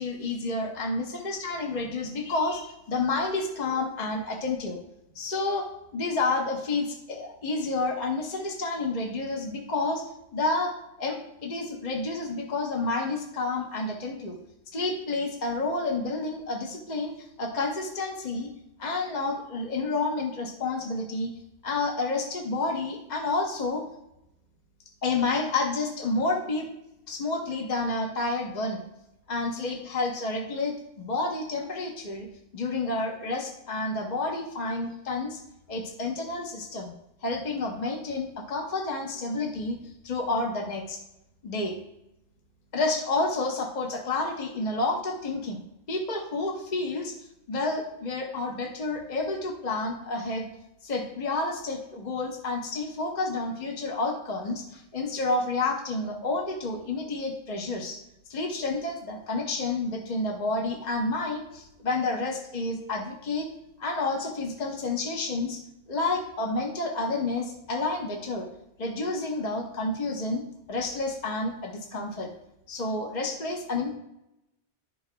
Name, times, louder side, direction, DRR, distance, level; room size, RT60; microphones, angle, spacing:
voice 1, 0.0-4.8 5.1-5.7 5.9-10.0 10.3-14.4 14.7-18.5 18.8-21.3 21.6-23.8 25.0-26.7 27.1-28.8 29.3-32.3 32.5-35.4 35.7-36.9 37.2-39.8 40.0-41.0 41.4-41.8 42.7-45.6 45.9-47.1 47.5-50.5 50.8-58.0 58.3-63.5 63.8-65.6 65.9-68.5 68.8-72.3 72.7-73.9, left 3 dB, 45° left, 0 dB, 1.1 m, -30 dB
12.5 x 4.8 x 2.2 m, 0.85 s
omnidirectional pair, 1.1 m